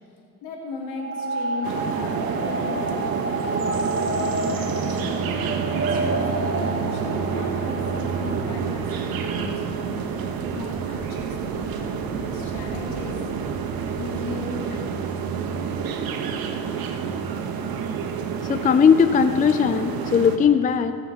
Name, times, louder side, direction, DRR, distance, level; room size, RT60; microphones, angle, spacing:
voice 1, 0.4-5.2 5.7-9.9 10.5-13.2 13.9-14.9, left 3 dB, 65° left, -1 dB, 2.7 m, -36 dB
sound 1, 0.9-8.5, right 2 dB, 30° right, 1.3 m, -29 dB
sound 2, 1.6-20.4, right 6 dB, 55° right, 1.2 m, -28 dB
voice 2, 18.4-20.9, left 6 dB, 20° left, 11 dB, 0.5 m, -18 dB
20.5 x 7.2 x 4.2 m, 2.7 s
hypercardioid pair, 60°, 43 cm